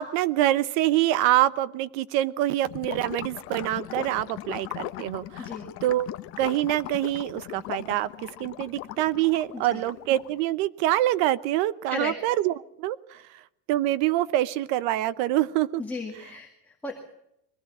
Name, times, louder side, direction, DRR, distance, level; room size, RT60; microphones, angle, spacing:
voice 1, 0.0-5.5 5.8-6.1 6.4-8.1 8.4-13.2 13.7-15.8, right 14 dB, 55° right, 17 dB, 0.9 m, -25 dB
Gurgling / Liquid, 2.7-10.4, left 16 dB, 35° left, 0.7 m, -39 dB
voice 2, 15.8-17.0, left 3 dB, 5° left, -1 dB, 2.0 m, -35 dB
22.5 x 17.0 x 7.4 m, 0.78 s
cardioid pair, 180°, 38 cm